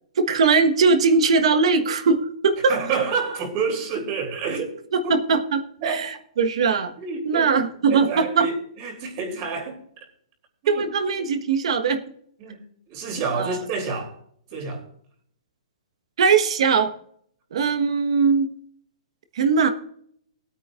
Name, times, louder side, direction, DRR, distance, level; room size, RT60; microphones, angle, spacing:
voice 1, 0.2-2.7 4.9-6.1 6.4-6.9 7.2-8.5 10.7-12.0 13.4-13.6 16.2-16.9 17.5-18.5 19.3-19.7, right 5 dB, 55° right, 1.3 m, -20 dB
voice 2, 2.6-4.7 5.8-6.1 7.0-7.5 7.9-9.8 10.6-10.9 12.4-12.6 12.9-14.2 14.5-14.8, right 5 dB, 30° right, 3.1 m, -28 dB
20.0 x 9.0 x 2.5 m
hypercardioid pair, 170°, 4 cm